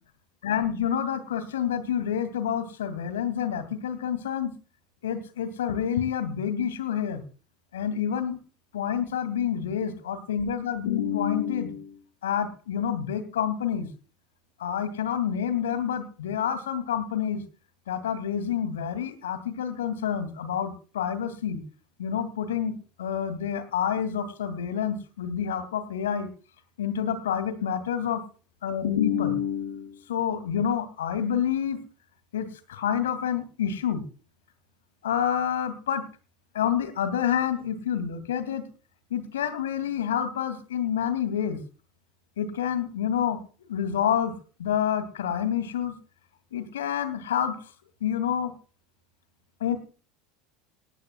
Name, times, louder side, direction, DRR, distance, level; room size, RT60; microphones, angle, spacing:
voice 1, 0.4-4.5 5.0-7.2 7.7-8.4 8.7-13.9 14.6-17.4 17.9-21.6 22.0-26.3 26.8-28.2 28.6-31.8 32.3-34.0 35.0-36.0 36.5-38.6 39.1-41.6 42.4-44.3 44.6-45.9 46.5-47.5 48.0-48.5 49.6-49.8, left 8 dB, 75° left, 11 dB, 2.6 m, -28 dB
19.0 x 16.0 x 2.4 m, 0.37 s
figure-of-eight pair, 70°, 0 cm